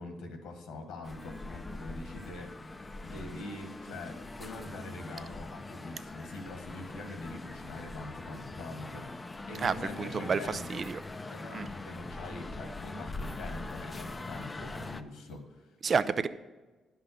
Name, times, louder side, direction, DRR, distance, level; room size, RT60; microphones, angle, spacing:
voice 1, 0.0-2.7 3.0-10.8 11.3-15.7, left 2 dB, 90° left, 4 dB, 1.7 m, -44 dB
sound 1, 1.0-15.0, left 2 dB, 20° left, 0.6 m, -42 dB
voice 2, 9.6-11.0 11.5-11.7 15.8-16.3, right 5 dB, 45° right, 14 dB, 0.5 m, -30 dB
11.0 x 5.7 x 6.6 m, 1.2 s
cardioid pair, 90°, 0 cm